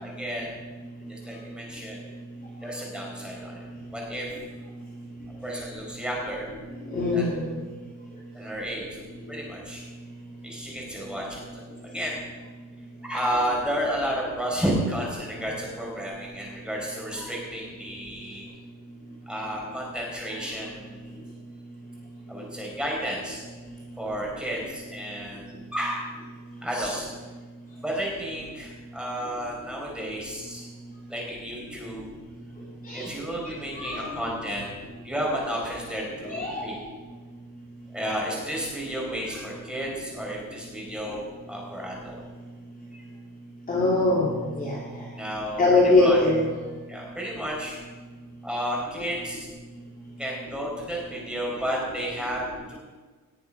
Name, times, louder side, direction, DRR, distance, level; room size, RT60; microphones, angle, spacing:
voice 1, 0.0-0.5 1.0-2.0 2.6-4.3 5.4-6.5 7.1-7.2 8.3-9.0 9.3-9.8 10.4-12.2 13.1-18.4 19.3-21.2 22.3-23.4 24.0-26.1 26.6-27.1 27.8-30.6 31.1-32.0 32.9-34.7 35.0-36.7 37.9-42.2 42.9-43.0 45.2-45.6 46.0-46.2 46.9-47.8 48.4-49.5 50.2-52.8, equal, 5° right, -3 dB, 5.0 m, -32 dB
voice 2, 6.8-7.6 32.8-33.1 33.4-34.1 36.3-36.7 43.7-45.0 45.6-46.5, left 2 dB, 25° left, -5 dB, 2.9 m, -23 dB
19.0 x 7.9 x 5.7 m, 1.4 s
cardioid pair, 140°, 34 cm